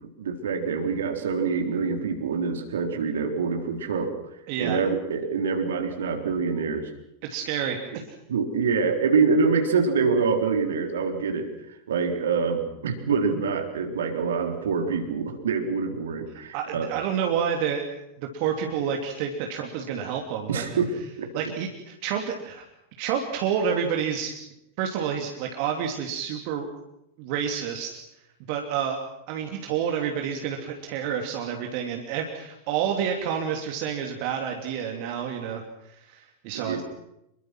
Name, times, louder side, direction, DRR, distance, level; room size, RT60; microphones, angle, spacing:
voice 1, 0.2-4.1 4.6-6.9 8.3-16.9 20.5-20.9 21.2-21.3 36.5-36.8, right 5 dB, 65° right, 4 dB, 3.8 m, -25 dB
voice 2, 4.5-4.8 7.2-8.0 16.5-17.9 18.2-20.7 21.3-22.6 23.0-24.3 24.8-26.7 27.2-28.0 28.5-29.0 29.3-36.8, right 8 dB, 45° right, 2 dB, 2.9 m, -29 dB
26.5 x 23.0 x 6.2 m, 0.84 s
figure-of-eight pair, 90°, 0 cm